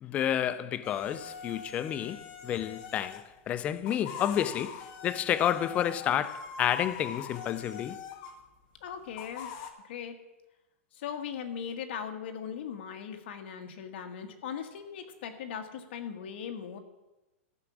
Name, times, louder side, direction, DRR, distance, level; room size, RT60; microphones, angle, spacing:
voice 1, 0.0-8.0, left 10 dB, 20° left, 0.4 m, -30 dB
sound 1, 0.8-3.3 3.7-8.4 9.1-9.7, left 7 dB, 40° left, 1.2 m, -43 dB
voice 2, 8.8-9.5 9.8-10.2 10.9-16.8, left 7 dB, 55° left, 1.5 m, -39 dB
13.5 x 6.0 x 7.2 m
supercardioid pair, 160°, 7 cm